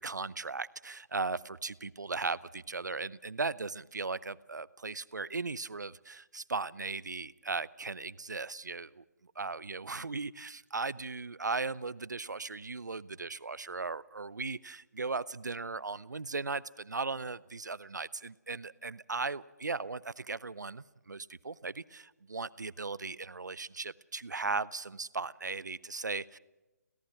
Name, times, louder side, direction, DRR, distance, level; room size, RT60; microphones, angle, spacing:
voice 1, 0.0-9.0 9.4-26.4, right 4 dB, 90° right, 19 dB, 0.7 m, -37 dB
25.0 x 17.5 x 5.9 m, 1.1 s
figure-of-eight pair, 145°, 9 cm